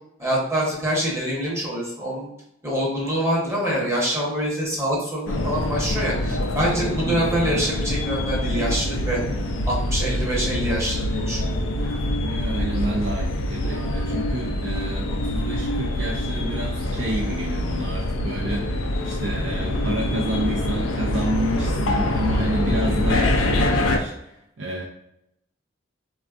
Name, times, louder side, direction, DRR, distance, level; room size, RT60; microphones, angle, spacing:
voice 1, 0.2-2.3 2.6-9.2 9.7-11.6, equal, 15° right, -5 dB, 0.8 m, -25 dB
sound 1, 5.3-24.0, left 1 dB, 90° left, 0.4 m, -25 dB
voice 2, 11.9-24.8, right 1 dB, 70° right, -2 dB, 0.4 m, -29 dB
3.5 x 2.3 x 2.3 m, 0.79 s
head